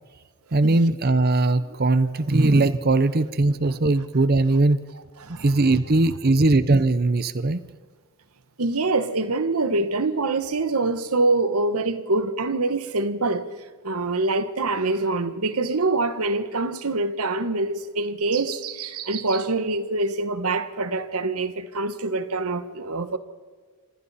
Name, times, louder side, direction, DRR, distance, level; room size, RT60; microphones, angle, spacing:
voice 1, 0.5-4.8 5.4-7.6, right 2 dB, 45° right, 0.7 m, -20 dB
voice 2, 5.2-5.5 8.6-13.5 13.8-23.2, right 3 dB, 85° right, 1.2 m, -25 dB
28.0 x 25.5 x 4.2 m
head